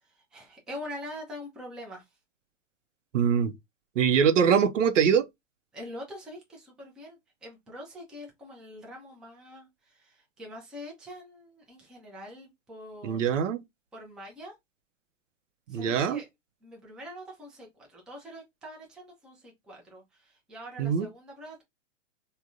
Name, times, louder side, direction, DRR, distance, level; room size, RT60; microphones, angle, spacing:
voice 1, 0.0-2.1 5.7-13.3 13.9-14.5 15.7-16.3 16.6-21.6, equal, ahead, 0.4 m, -44 dB
voice 2, 3.1-3.5 4.0-5.3 13.0-13.6 15.7-16.2 20.8-21.1, right 7 dB, 75° right, 0.5 m, -23 dB
3.4 x 2.1 x 2.4 m
hypercardioid pair, 115°, 37 cm